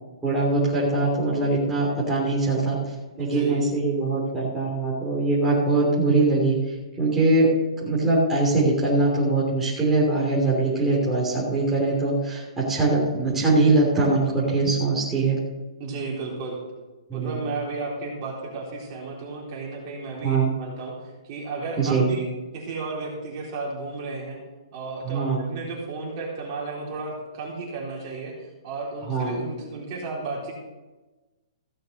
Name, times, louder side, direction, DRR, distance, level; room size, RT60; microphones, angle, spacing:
voice 1, 0.2-7.5 7.8-15.4 17.1-17.4 20.2-20.5 21.8-22.1 25.0-25.4 29.1-29.4, right 3 dB, 10° right, -6 dB, 3.2 m, -22 dB
voice 2, 3.2-3.6 15.8-16.6 17.1-20.9 21.2-22.2 22.5-24.4 24.7-30.5, right 3 dB, 35° right, -3 dB, 3.8 m, -33 dB
15.5 x 6.5 x 6.6 m, 1.2 s
hypercardioid pair, 160°, 3 cm